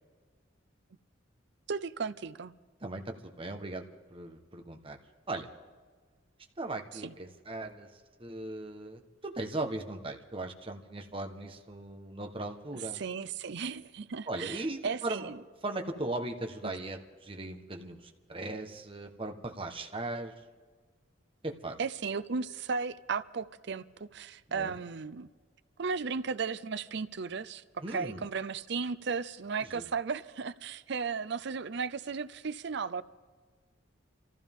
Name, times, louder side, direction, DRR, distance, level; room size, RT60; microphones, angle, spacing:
voice 1, 1.7-2.5 7.0-7.1 12.9-15.4 16.6-16.7 21.8-25.3 25.8-33.0, right 5 dB, 60° right, 15 dB, 0.6 m, -35 dB
voice 2, 2.8-3.8 4.1-5.0 5.3-5.5 6.6-7.9 8.2-13.0 14.3-15.3 15.6-20.3 21.4-21.8 24.5-24.7 27.8-28.2 29.6-29.8, right 2 dB, 25° right, 4 dB, 1.3 m, -38 dB
26.0 x 15.0 x 3.6 m, 1.4 s
head